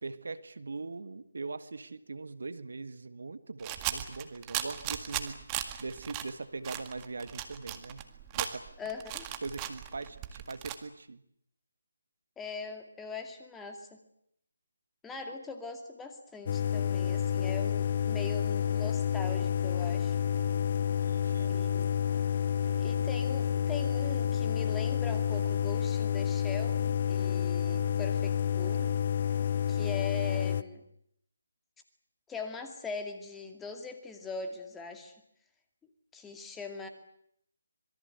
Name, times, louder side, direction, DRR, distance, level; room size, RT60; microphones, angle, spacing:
voice 1, 0.0-5.4 5.8-8.0 8.3-8.7 9.4-11.2 21.0-21.5, right 3 dB, 65° right, 12 dB, 1.7 m, -41 dB
sound 1, 3.6-6.3 6.6-10.7, right 12 dB, 20° right, 1.9 m, -37 dB
voice 2, 8.8-9.3 12.4-14.0 15.0-20.2 21.4-22.1 22.8-28.9 29.7-30.8 32.3-35.1 36.1-36.9, left 4 dB, 5° left, 5 dB, 2.3 m, -41 dB
sound 2, 16.5-30.6, left 8 dB, 40° left, 0.9 m, -29 dB
26.0 x 22.0 x 8.1 m, 0.73 s
figure-of-eight pair, 155°, 0 cm